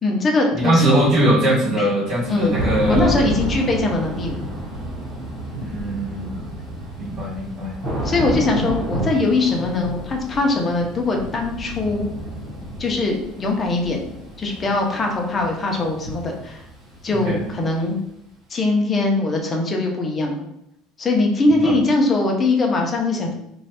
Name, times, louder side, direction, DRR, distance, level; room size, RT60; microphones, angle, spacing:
voice 1, 0.0-0.9 1.8-1.9 2.3-2.6 2.9-4.5 8.0-12.1 12.8-14.1 14.4-16.6 17.0-18.0 18.5-20.5 21.0-23.3, left 2 dB, 20° left, 1 dB, 0.6 m, -21 dB
voice 2, 0.6-3.1 5.5-6.3 7.0-7.7 17.1-17.4 21.6-21.8, right 1 dB, 40° right, -6 dB, 1.4 m, -21 dB
Thunder / Rain, 2.1-17.8, right 1 dB, 25° right, 1.1 m, -30 dB
3.1 x 2.2 x 4.2 m, 0.79 s
cardioid pair, 165°, 0 cm